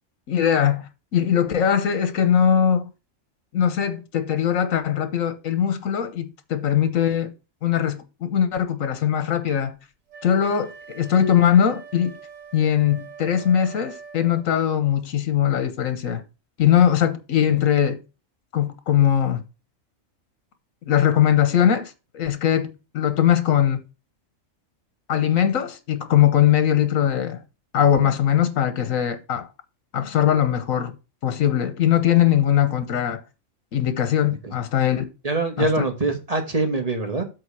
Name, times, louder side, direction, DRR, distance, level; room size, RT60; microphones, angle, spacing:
voice 1, 0.3-2.9 3.5-7.3 7.6-9.8 10.2-12.1 12.5-16.2 16.6-18.0 18.5-19.4 20.9-23.8 25.1-27.4 27.7-29.5 29.9-31.0 31.2-33.2 33.7-35.1 35.6-35.7, left 9 dB, 80° left, 1.4 m, -21 dB
Wind instrument woodwind instrument, 10.1-14.5, right 6 dB, 75° right, 2.0 m, -43 dB
voice 2, 35.2-37.2, right 2 dB, 30° right, 1.5 m, -24 dB
8.0 x 3.7 x 6.7 m
omnidirectional pair, 1.4 m